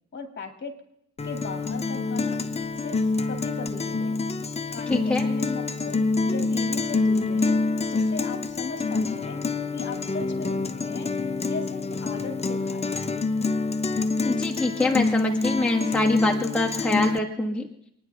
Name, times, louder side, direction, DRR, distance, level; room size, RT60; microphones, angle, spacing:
voice 1, 0.1-0.7 1.2-2.4 2.8-4.2 4.7-7.6 7.9-9.4 9.7-11.1 11.4-13.3, left 4 dB, 40° left, 5 dB, 2.4 m, -37 dB
Guitar, 1.2-17.2, left 3 dB, 20° left, 0.7 m, -26 dB
voice 2, 4.9-5.2 14.2-17.7, left 2 dB, 5° left, -1 dB, 1.5 m, -25 dB
25.0 x 9.9 x 3.5 m, 0.75 s
cardioid pair, 90°, 30 cm